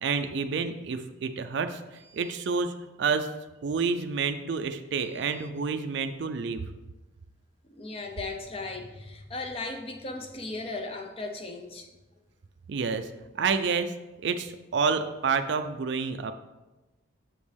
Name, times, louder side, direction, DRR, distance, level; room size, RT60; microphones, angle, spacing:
voice 1, 0.0-2.7 3.0-3.3 3.6-6.6 12.7-13.1 13.3-13.9 14.2-16.3, right 5 dB, 60° right, 8 dB, 0.4 m, -29 dB
voice 2, 7.7-11.9, left 3 dB, 30° left, 4 dB, 0.6 m, -36 dB
7.0 x 5.2 x 3.4 m, 1.1 s
head